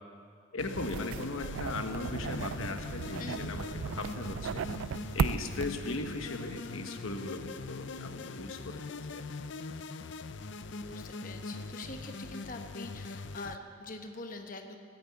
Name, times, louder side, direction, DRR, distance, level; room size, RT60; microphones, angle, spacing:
voice 1, 0.5-4.6 5.1-9.2, left 2 dB, 90° left, 6 dB, 1.2 m, -38 dB
sound 1, 0.6-13.6, left 3 dB, 60° left, 0.5 m, -42 dB
sound 2, 0.7-6.0, right 6 dB, 80° right, 0.4 m, -36 dB
Thunder, 1.6-8.3, right 1 dB, 30° right, 0.7 m, -51 dB
voice 2, 3.2-3.5 10.7-14.8, left 2 dB, 40° left, 5 dB, 0.9 m, -44 dB
18.5 x 8.7 x 8.5 m, 2.3 s
head